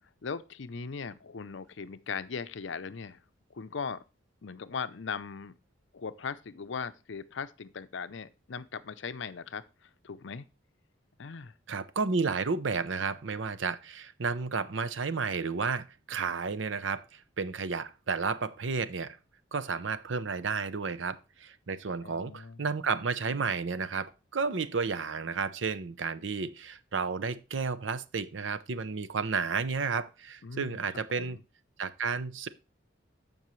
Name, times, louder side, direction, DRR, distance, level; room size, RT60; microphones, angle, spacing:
voice 1, 0.2-3.2 3.5-4.0 4.4-5.5 5.9-10.5 11.2-11.5 22.0-22.8 30.4-30.8 31.1-31.4, left 5 dB, 65° left, 0.6 m, -39 dB
voice 2, 11.7-19.2 19.5-31.4 31.8-32.5, right 4 dB, 70° right, 0.7 m, -32 dB
14.5 x 5.4 x 3.1 m
head